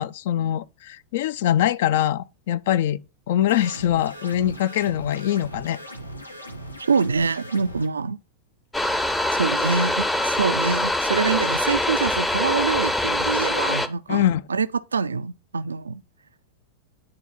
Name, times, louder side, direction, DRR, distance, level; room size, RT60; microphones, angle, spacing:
voice 1, 0.0-3.0 3.3-5.8 14.1-14.4, left 11 dB, 55° left, 0.3 m, -23 dB
sound 1, 3.5-7.9, right 1 dB, 85° left, 0.9 m, -39 dB
voice 2, 6.9-8.2 9.3-16.0, right 5 dB, 75° right, 0.3 m, -25 dB
sound 2, 8.7-13.9, left 1 dB, 10° left, 0.6 m, -23 dB
9.7 x 3.8 x 4.1 m
figure-of-eight pair, 90°, 0 cm